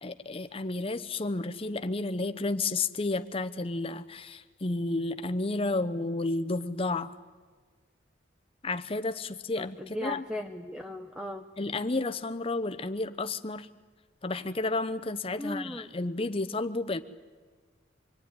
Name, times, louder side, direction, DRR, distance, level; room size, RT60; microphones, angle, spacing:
voice 1, 0.0-7.1 8.6-10.2 11.6-13.7 14.2-17.0, left 2 dB, 30° left, 10 dB, 0.8 m, -31 dB
voice 2, 9.6-11.4 15.4-15.9, left 1 dB, 5° right, 4 dB, 0.8 m, -37 dB
25.5 x 22.0 x 9.6 m, 1.5 s
head